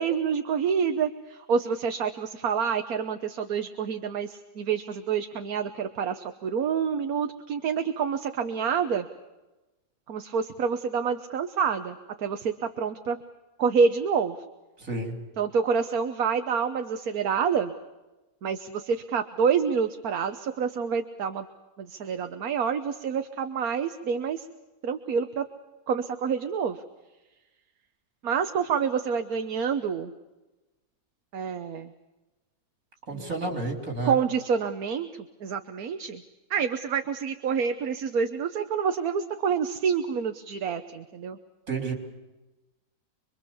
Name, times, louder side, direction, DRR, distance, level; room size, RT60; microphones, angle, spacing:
voice 1, 0.0-9.1 10.1-13.2 13.6-14.4 15.4-17.7 18.4-21.5 21.8-24.4 24.8-25.5 25.9-26.8 28.2-30.1 31.3-31.9 33.1-33.3 34.0-35.1 35.4-36.2 36.5-41.4, right 6 dB, 80° right, 8 dB, 1.5 m, -27 dB
voice 2, 14.8-15.2 33.1-34.2 41.7-41.9, right 3 dB, 65° right, 3 dB, 4.2 m, -30 dB
26.0 x 23.5 x 7.1 m, 1.1 s
omnidirectional pair, 1.5 m